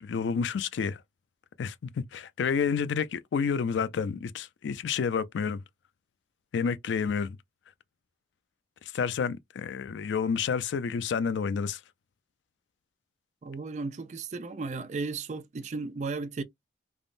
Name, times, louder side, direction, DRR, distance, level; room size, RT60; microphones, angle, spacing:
voice 1, 0.0-1.0 1.6-5.6 6.5-7.4 8.9-11.8, left 6 dB, 85° left, 0.4 m, -29 dB
voice 2, 13.4-16.4, right 4 dB, 40° right, 0.3 m, -35 dB
3.4 x 2.0 x 2.4 m
head